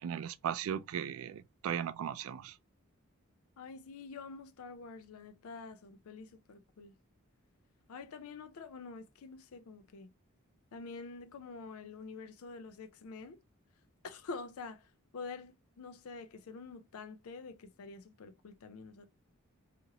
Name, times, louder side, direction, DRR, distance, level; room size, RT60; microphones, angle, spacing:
voice 1, 0.0-2.6, right 8 dB, 65° right, 0.3 m, -37 dB
voice 2, 3.6-6.9 7.9-10.1 10.7-13.4 14.0-19.1, left 4 dB, 75° left, 0.4 m, -47 dB
2.8 x 2.5 x 2.8 m
head